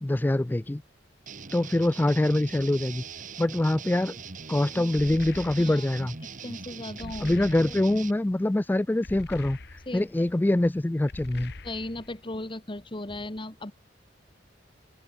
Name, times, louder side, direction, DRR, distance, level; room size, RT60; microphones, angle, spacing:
voice 1, 0.0-0.8 1.5-3.0 3.4-4.2 4.5-6.2 7.2-9.6 9.9-11.5, left 1 dB, 10° left, 0.3 m, -24 dB
sound 1, 1.3-8.1, right 5 dB, 45° right, 1.6 m, -41 dB
voice 2, 4.7-5.2 5.6-5.9 6.4-7.4 9.9-10.3 11.6-13.7, left 1 dB, 25° left, 1.7 m, -37 dB
sound 2, 4.9-6.0 7.0-8.1 9.0-10.1 11.1-12.2, left 2 dB, 60° left, 1.4 m, -43 dB
open air
head